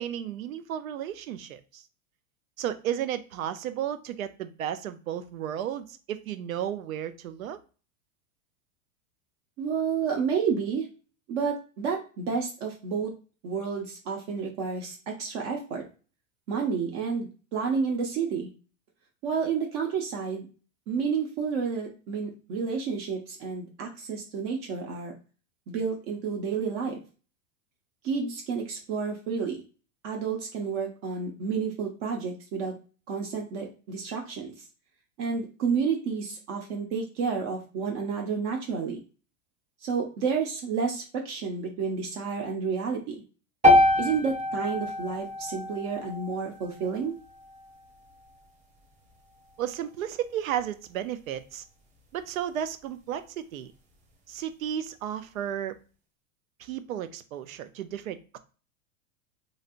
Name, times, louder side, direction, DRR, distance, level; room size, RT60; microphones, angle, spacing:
voice 1, 0.0-1.8 2.6-7.6 49.6-51.6 52.1-53.7 54.3-55.8 56.6-58.4, right 10 dB, 90° right, 12 dB, 0.6 m, -33 dB
voice 2, 9.6-10.9 11.3-13.1 13.4-15.8 16.5-18.5 19.2-20.5 20.9-25.1 25.7-27.0 28.0-29.6 30.0-32.7 33.1-34.5 35.2-39.0 39.8-43.2 44.0-47.2, right 5 dB, 55° right, 1 dB, 0.9 m, -30 dB
sound 1, 43.6-47.8, left 1 dB, 20° right, 0.9 m, -25 dB
3.2 x 2.6 x 2.4 m, 0.36 s
hypercardioid pair, 115°, 40 cm